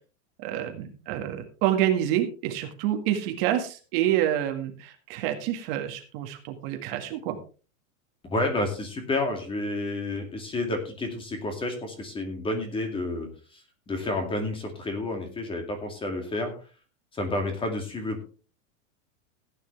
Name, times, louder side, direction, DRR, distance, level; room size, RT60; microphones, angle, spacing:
voice 1, 0.4-7.4, right 11 dB, 45° right, 5 dB, 1.8 m, -27 dB
voice 2, 8.3-16.5 17.1-18.2, left 2 dB, 15° left, 5 dB, 2.3 m, -30 dB
16.0 x 9.6 x 3.3 m, 0.36 s
supercardioid pair, 160°, 41 cm